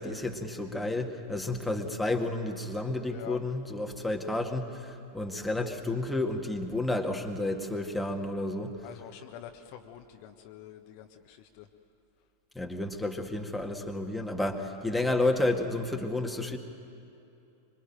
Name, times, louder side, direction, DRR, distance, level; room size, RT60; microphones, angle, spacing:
voice 1, 0.0-8.7 12.6-16.6, left 2 dB, 5° left, 1 dB, 2.2 m, -31 dB
voice 2, 3.1-3.4 8.8-11.7, left 10 dB, 45° left, 4 dB, 1.5 m, -46 dB
26.0 x 24.5 x 9.1 m, 2.8 s
figure-of-eight pair, 90°, 0 cm